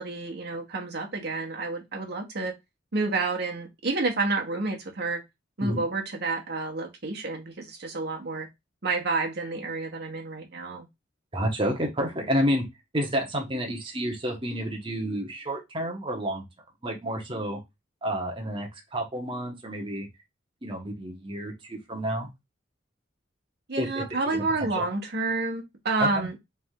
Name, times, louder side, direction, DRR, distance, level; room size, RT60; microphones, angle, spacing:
voice 1, 0.0-2.5 2.9-5.2 5.6-8.5 8.8-10.9 23.7-26.4, right 3 dB, 60° right, 1.1 m, -29 dB
voice 2, 11.3-12.7 12.9-16.4 16.8-17.6 18.0-20.1 20.6-22.3 23.8-24.0 24.3-24.4 24.7-24.8 26.0-26.3, equal, 30° right, 1.0 m, -30 dB
3.4 x 3.3 x 3.6 m
head